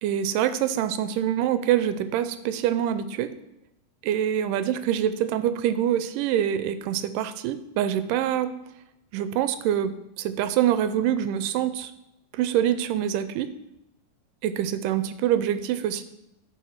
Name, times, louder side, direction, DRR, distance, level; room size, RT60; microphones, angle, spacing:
voice 1, 0.0-3.3 4.0-8.5 9.1-11.9 12.3-13.5 14.4-16.0, right 10 dB, 85° right, 12 dB, 2.2 m, -25 dB
12.0 x 4.4 x 5.6 m, 0.88 s
omnidirectional pair, 3.8 m